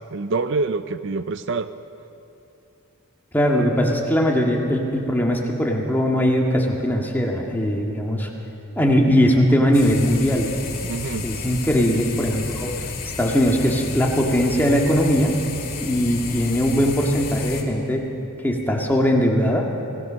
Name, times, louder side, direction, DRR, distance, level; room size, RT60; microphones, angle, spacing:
voice 1, 0.1-1.7 10.8-11.3, right 3 dB, 55° right, 11 dB, 0.5 m, -26 dB
voice 2, 3.3-8.3 8.8-10.5 11.2-12.7 13.2-15.3 15.8-18.0 18.4-19.7, equal, 10° left, -1 dB, 1.9 m, -20 dB
sound 1, 9.7-17.6, left 4 dB, 40° left, 2.2 m, -32 dB
26.0 x 16.0 x 6.3 m, 2.9 s
head